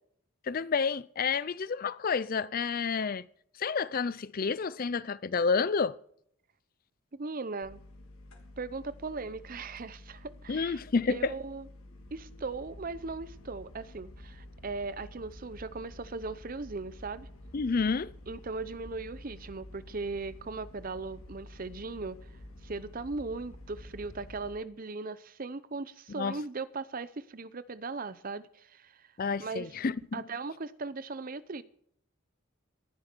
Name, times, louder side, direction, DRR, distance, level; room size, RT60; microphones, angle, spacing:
voice 1, 0.4-3.3 3.6-6.0 10.5-11.3 17.5-18.1 26.2-26.4 29.2-30.2, left 5 dB, 40° left, 0.4 m, -29 dB
voice 2, 7.1-7.8 8.6-10.8 11.1-11.7 12.1-17.3 18.3-22.2 22.6-29.1 29.4-29.7 30.1-31.6, right 3 dB, 40° right, 0.6 m, -38 dB
sound 1, 7.6-24.5, left 1 dB, 80° left, 3.1 m, -50 dB
18.5 x 11.0 x 4.5 m
head